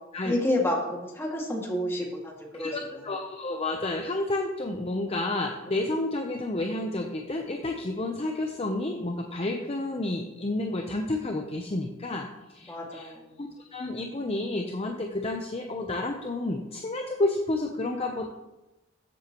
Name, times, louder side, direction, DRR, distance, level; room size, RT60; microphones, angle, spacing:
voice 1, 0.2-3.1 12.7-13.4, left 1 dB, 15° left, -1 dB, 2.1 m, -30 dB
voice 2, 2.6-12.3 12.5-13.1 13.4-18.3, left 2 dB, 30° left, 3 dB, 0.7 m, -30 dB
14.0 x 8.1 x 3.0 m, 0.99 s
head